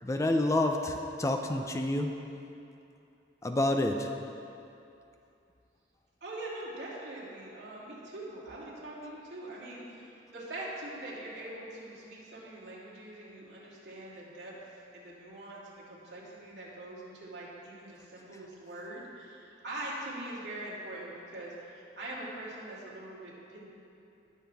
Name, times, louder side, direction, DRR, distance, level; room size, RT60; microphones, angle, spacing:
voice 1, 0.0-2.1 3.4-4.1, left 1 dB, 15° left, 4 dB, 0.4 m, -28 dB
voice 2, 6.2-23.7, right 1 dB, 65° right, -7 dB, 2.8 m, -43 dB
19.0 x 7.2 x 3.5 m, 2.7 s
head